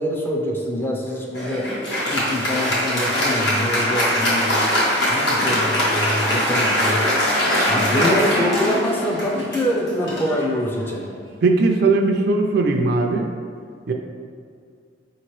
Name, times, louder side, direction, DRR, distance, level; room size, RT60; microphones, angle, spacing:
voice 1, 0.0-1.6 1.9-7.0 7.7-11.1, left 1 dB, 10° left, -1 dB, 0.4 m, -25 dB
Applause, 1.3-11.1, equal, 65° left, 1.2 m, -21 dB
voice 2, 11.4-13.3 13.9-14.0, right 3 dB, 60° right, 3 dB, 0.4 m, -18 dB
4.9 x 2.9 x 3.0 m, 2.2 s
head